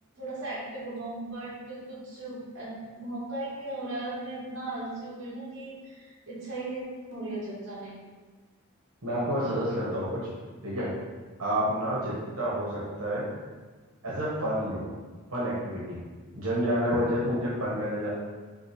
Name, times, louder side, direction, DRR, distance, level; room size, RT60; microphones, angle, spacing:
voice 1, 0.2-7.9, right 2 dB, 50° right, -7 dB, 1.4 m, -37 dB
voice 2, 9.0-10.2 10.6-10.9 11.4-13.2 14.0-14.9 15.3-16.0 16.3-18.1, equal, 70° right, -7 dB, 1.3 m, -29 dB
5.3 x 2.8 x 3.2 m, 1.4 s
head